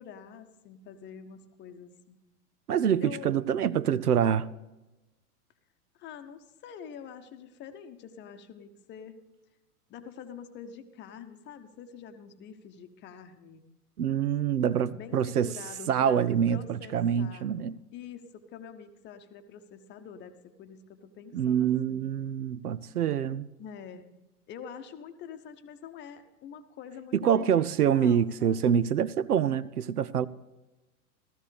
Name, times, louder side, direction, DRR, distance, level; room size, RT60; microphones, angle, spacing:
voice 1, 0.0-2.2 3.0-3.3 6.0-9.2 9.9-13.6 15.0-17.5 17.9-22.1 23.6-24.1 24.5-28.6, left 7 dB, 25° left, 0.9 m, -46 dB
voice 2, 2.7-4.5 14.0-15.5 15.9-17.7 21.3-23.5 27.1-30.3, right 8 dB, 80° right, 0.6 m, -26 dB
15.5 x 13.5 x 3.3 m
figure-of-eight pair, 100°, 45 cm